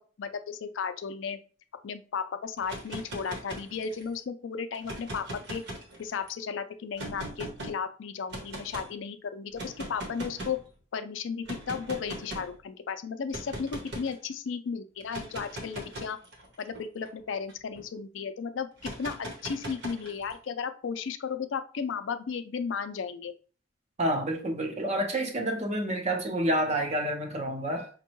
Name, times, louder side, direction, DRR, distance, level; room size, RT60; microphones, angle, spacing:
voice 1, 0.2-1.4 1.8-5.6 6.0-10.6 10.9-16.2 16.6-23.3, left 6 dB, 75° left, 0.4 m, -34 dB
sound 1, 2.6-4.1 4.7-6.3 7.0-7.7 8.3-8.9 9.5-10.6 11.5-12.5 13.3-14.1 15.0-17.8 18.8-20.3, right 1 dB, 60° right, 1.0 m, -40 dB
voice 2, 24.0-27.9, right 1 dB, 35° right, 0.7 m, -29 dB
5.1 x 2.2 x 3.0 m
head